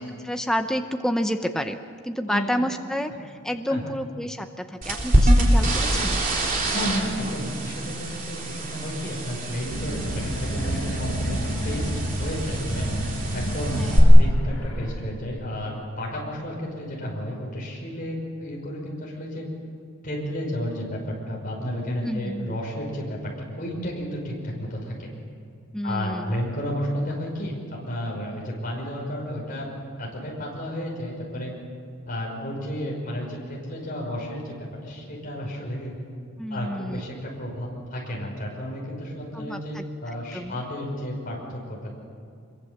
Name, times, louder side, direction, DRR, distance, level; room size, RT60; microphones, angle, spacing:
voice 1, 0.0-1.8 2.0-6.2 13.7-14.0 22.0-22.6 25.7-26.3 36.4-37.0 39.3-40.6, equal, 5° left, 6 dB, 0.7 m, -30 dB
sound 1, 4.8-14.0, right 1 dB, 40° right, 3.6 m, -25 dB
voice 2, 6.7-11.3 11.6-12.9 13.3-19.4 20.0-23.2 23.6-25.1 25.8-29.7 30.0-31.5 32.1-35.9 36.5-41.9, equal, 40° left, -2 dB, 5.8 m, -32 dB
sound 2, 9.6-14.9, equal, 65° left, 6.2 m, -30 dB
25.0 x 22.5 x 7.2 m, 2.4 s
head